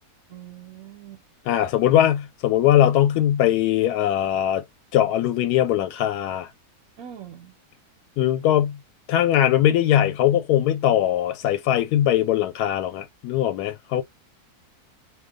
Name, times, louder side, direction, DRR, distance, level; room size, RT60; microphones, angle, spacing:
voice 1, 0.3-1.2 7.0-7.5, right 10 dB, 65° right, 1.2 m, -42 dB
voice 2, 1.5-4.6 4.9-6.5 8.2-8.8 9.1-14.0, left 11 dB, 90° left, 1.1 m, -20 dB
2.7 x 2.2 x 3.7 m
omnidirectional pair, 1.6 m